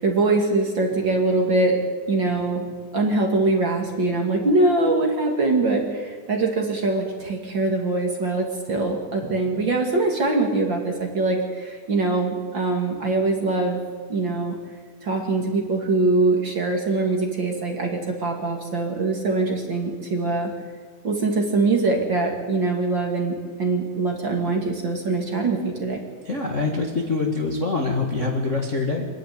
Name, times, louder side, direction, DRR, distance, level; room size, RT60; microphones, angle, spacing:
voice 1, 0.0-2.7 2.9-13.8 14.1-14.6 15.0-20.5 21.0-26.0, right 3 dB, 40° right, 1 dB, 2.4 m, -23 dB
voice 2, 26.2-29.1, left 3 dB, 30° left, 0 dB, 1.4 m, -24 dB
25.0 x 11.5 x 9.5 m, 1.5 s
omnidirectional pair, 3.8 m